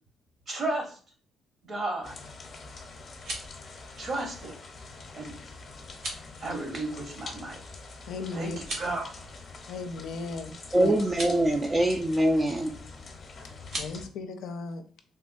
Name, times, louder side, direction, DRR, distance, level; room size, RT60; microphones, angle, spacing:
voice 1, 0.5-1.0 1.6-2.1 4.0-4.6 5.1-5.4 6.4-7.6 8.3-9.3 10.9-11.0, right 2 dB, 50° right, 2 dB, 1.1 m, -33 dB
sound 1, 2.0-14.1, left 3 dB, 45° left, 0.7 m, -45 dB
sound 2, 3.0-3.6 5.9-6.3 8.5-9.0 11.0-11.4 13.6-13.9, right 1 dB, 70° right, 1.1 m, -37 dB
voice 2, 8.1-8.6 9.7-10.9 13.7-14.8, left 4 dB, 85° left, 7 dB, 0.4 m, -36 dB
voice 3, 10.7-12.8, right 1 dB, 25° right, 2 dB, 0.4 m, -24 dB
3.5 x 2.2 x 2.5 m, 0.42 s
cardioid pair, 90°, 0 cm